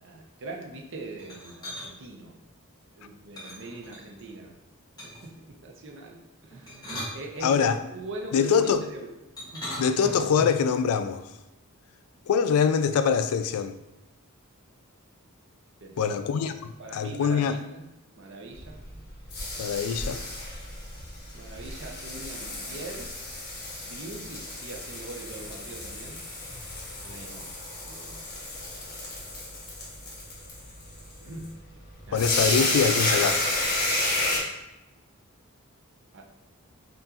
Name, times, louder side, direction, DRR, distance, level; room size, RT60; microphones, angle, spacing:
voice 1, 0.0-2.3 2.9-4.6 5.2-7.6 7.9-8.6 8.9-9.1 9.5-9.7 15.8-16.1 16.8-17.8 18.2-18.8 21.3-23.1 23.6-26.3 27.0-27.5 27.8-28.2 31.2-31.5 32.1-32.3 36.1-36.2, right 2 dB, 60° right, 0.6 m, -42 dB
sound 1, 1.2-1.9 3.4-4.3 5.0-5.4 6.5-7.8 9.4-10.7, equal, 20° left, 1.0 m, -38 dB
voice 2, 7.4-7.8 8.3-8.9 9.8-11.3 12.3-13.8 16.0-17.6 19.6-20.2 32.1-33.5, left 6 dB, 80° left, 0.3 m, -24 dB
sound 2, 18.5-34.4, left 1 dB, 45° left, 1.2 m, -31 dB
5.5 x 2.5 x 2.4 m
head